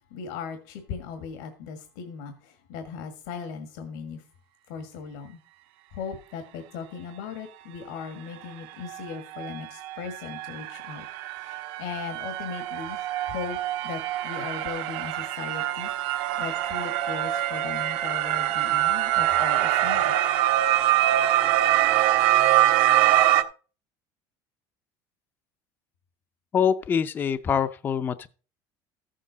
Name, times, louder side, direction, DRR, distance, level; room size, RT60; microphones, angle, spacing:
voice 1, 0.1-4.2 4.7-5.4 5.9-11.1 11.4-13.6 13.8-20.2, left 6 dB, 85° left, 1.7 m, -38 dB
sound 1, 8.9-9.0 9.3-23.4, right 13 dB, 65° right, 1.0 m, -24 dB
voice 2, 26.5-28.3, left 7 dB, 20° left, 0.4 m, -24 dB
14.5 x 7.5 x 4.0 m
cardioid pair, 170°, 10 cm